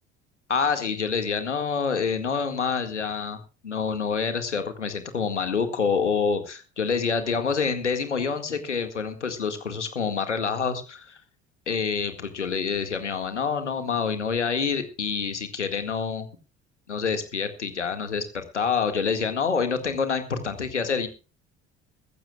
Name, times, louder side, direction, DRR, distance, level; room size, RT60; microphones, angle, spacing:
voice 1, 0.5-11.2 11.7-16.3 16.9-21.1, left 5 dB, 85° left, 9 dB, 2.0 m, -27 dB
21.5 x 15.5 x 2.3 m, 0.32 s
figure-of-eight pair, 55°, 34 cm